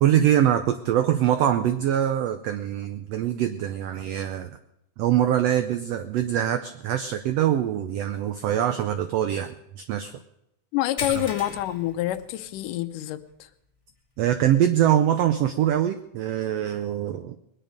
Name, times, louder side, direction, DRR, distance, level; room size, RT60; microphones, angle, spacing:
voice 1, 0.0-4.6 5.0-10.1 14.2-17.4, right 11 dB, 90° right, 9 dB, 1.4 m, -23 dB
voice 2, 10.7-13.5, left 14 dB, 85° left, 11 dB, 2.3 m, -27 dB
sound 1, 11.0-12.9 13.2-13.4 13.9-14.0 15.6-15.7, left 3 dB, 15° left, 1.1 m, -39 dB
21.5 x 10.0 x 5.2 m, 0.83 s
omnidirectional pair, 3.7 m